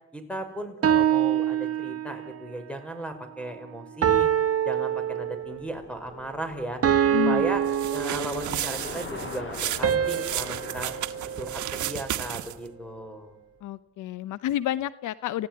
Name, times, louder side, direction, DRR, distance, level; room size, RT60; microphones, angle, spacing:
voice 1, 0.1-4.3 4.6-6.8 7.2-7.6 7.9-10.9 11.4-13.4, right 1 dB, 5° left, 8 dB, 5.8 m, -36 dB
sound 1, 0.8-2.4 4.0-5.7 6.8-8.7 9.8-12.2, right 10 dB, 50° right, 1.5 m, -25 dB
Bicycle, 4.9-13.2, left 3 dB, 40° left, 7.3 m, -42 dB
voice 2, 7.1-7.4 13.6-15.5, left 12 dB, 80° left, 16 dB, 0.9 m, -29 dB
sound 2, 7.7-12.7, right 13 dB, 75° right, 1.4 m, -33 dB
29.0 x 16.0 x 9.6 m, 0.86 s
cardioid pair, 90°, 30 cm